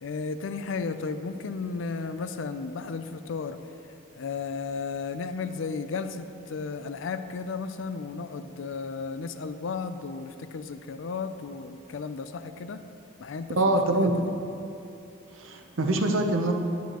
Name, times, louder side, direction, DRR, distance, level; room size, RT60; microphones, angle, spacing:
voice 1, 0.0-3.6 4.1-12.8 13.2-13.8 14.0-14.3, left 4 dB, 70° left, 10 dB, 0.4 m, -34 dB
voice 2, 13.6-14.3 15.4-16.5, right 1 dB, 80° right, 4 dB, 0.7 m, -24 dB
9.2 x 9.2 x 3.0 m, 2.7 s
head